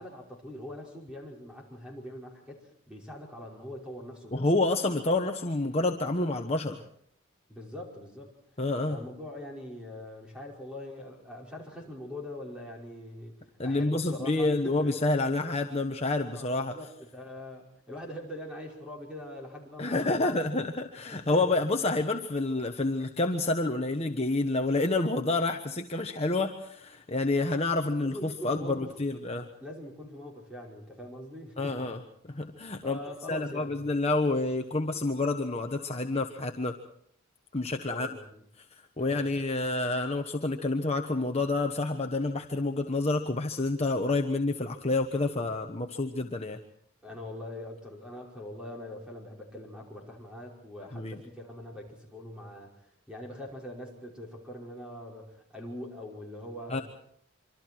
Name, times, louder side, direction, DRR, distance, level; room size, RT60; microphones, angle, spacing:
voice 1, 0.0-4.5 7.5-8.3 8.9-14.9 16.3-20.5 21.3-21.5 28.0-29.0 29.6-32.0 32.8-33.8 37.7-38.4 39.0-39.2 47.0-56.8, left 1 dB, 5° right, -1 dB, 5.5 m, -43 dB
voice 2, 4.3-6.8 8.6-9.0 13.6-16.7 19.8-29.5 31.6-32.0 32.3-33.0 33.3-36.7 37.5-38.1 39.0-46.6 50.9-51.2 56.7-56.8, left 2 dB, 30° left, 4 dB, 1.2 m, -28 dB
26.0 x 25.0 x 4.6 m, 0.66 s
head